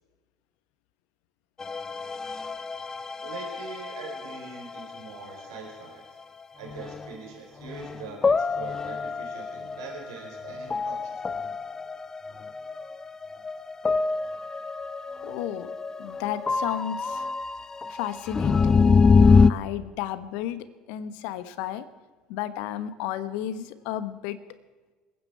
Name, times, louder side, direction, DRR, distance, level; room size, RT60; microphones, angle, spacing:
sound 1, 1.6-5.5 6.7-7.2 7.6-19.5, left 4 dB, 25° left, 0.5 m, -25 dB
voice 1, 3.2-6.1 6.6-11.2, right 4 dB, 75° right, -1 dB, 4.3 m, -42 dB
voice 2, 15.2-15.7 16.0-17.3 17.9-18.9 19.5-21.8 22.3-24.4, left 11 dB, 65° left, 13 dB, 1.1 m, -33 dB
27.5 x 9.6 x 4.7 m, 1.4 s
hypercardioid pair, 65°, 2 cm